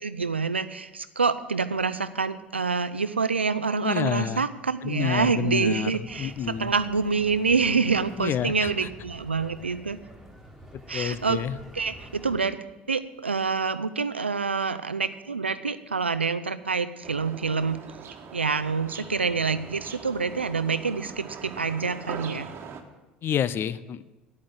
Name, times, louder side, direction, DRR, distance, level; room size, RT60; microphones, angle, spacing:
voice 1, 0.0-10.0 10.9-11.4 11.7-12.6 12.9-17.8 18.3-22.5, right 5 dB, 90° right, 13 dB, 0.5 m, -27 dB
voice 2, 3.8-4.5 4.8-6.7 8.2-8.7 10.7-11.6 23.2-24.0, left 9 dB, 40° left, 17 dB, 0.6 m, -29 dB
sound 1, 6.0-12.4, equal, ahead, 2.9 m, -47 dB
sound 2, 17.0-22.8, right 6 dB, 40° right, 1.4 m, -41 dB
9.7 x 8.7 x 7.8 m, 1.1 s
figure-of-eight pair, 65°, 6 cm